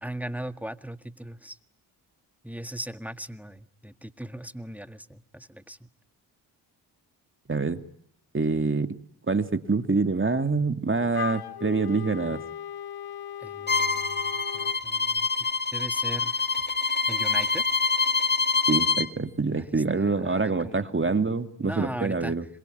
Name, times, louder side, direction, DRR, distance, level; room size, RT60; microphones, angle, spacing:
voice 1, 0.0-1.6 2.4-5.9 13.4-14.2 14.5-15.3 15.7-16.5 17.1-17.6 19.6-19.7 19.9-21.1 21.6-22.3, right 1 dB, 5° right, 11 dB, 1.7 m, -38 dB
voice 2, 7.5-7.8 8.3-9.0 9.3-12.4 18.7-22.5, right 4 dB, 25° right, 8 dB, 2.6 m, -26 dB
Wind instrument woodwind instrument, 11.1-14.8, left 10 dB, 55° left, 1.1 m, -37 dB
Bowed string instrument, 13.7-19.1, left 4 dB, 20° left, 1.4 m, -26 dB
27.0 x 23.0 x 9.4 m, 0.68 s
supercardioid pair, 50°, 45 cm